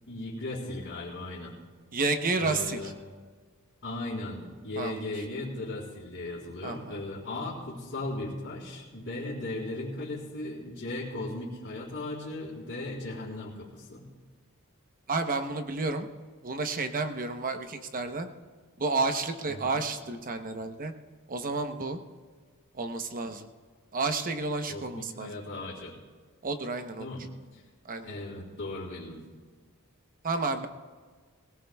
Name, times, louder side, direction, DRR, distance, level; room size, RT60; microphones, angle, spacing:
voice 1, 0.1-1.5 2.4-2.9 3.8-14.1 19.5-19.8 24.7-25.9 27.0-27.2 27.5-27.6 28.0-29.2, left 2 dB, 55° left, -11 dB, 3.7 m, -37 dB
voice 2, 1.9-2.8 4.8-5.0 6.6-7.0 15.1-16.1 16.4-18.3 18.8-20.9 21.3-22.0 22.7-23.5 23.9-25.3 26.4-27.1 27.8-28.1 30.2-30.7, right 3 dB, 40° right, 7 dB, 0.9 m, -31 dB
23.0 x 17.0 x 2.3 m, 1.5 s
head